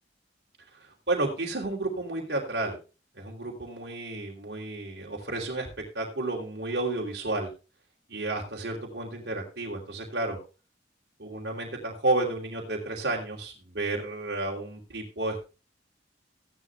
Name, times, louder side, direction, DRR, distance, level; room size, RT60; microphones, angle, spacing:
voice 1, 0.8-2.8 3.2-5.7 5.9-7.5 8.1-10.4 11.2-15.5, right 2 dB, 70° right, -1 dB, 3.0 m, -31 dB
16.0 x 11.0 x 2.3 m, 0.31 s
head